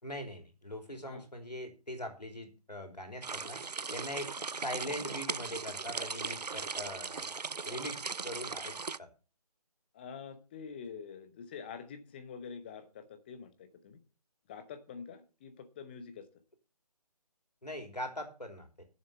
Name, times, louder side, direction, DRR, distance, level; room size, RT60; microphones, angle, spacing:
voice 1, 0.0-3.6 3.9-7.3 7.6-9.1 17.6-18.8, left 1 dB, 85° left, 4 dB, 3.3 m, -42 dB
sound 1, 3.2-9.0, right 4 dB, 85° right, 0.5 m, -38 dB
voice 2, 9.9-14.0 14.5-16.3, left 6 dB, 15° left, 8 dB, 0.9 m, -46 dB
10.5 x 7.0 x 7.0 m, 0.34 s
figure-of-eight pair, 150°, 20 cm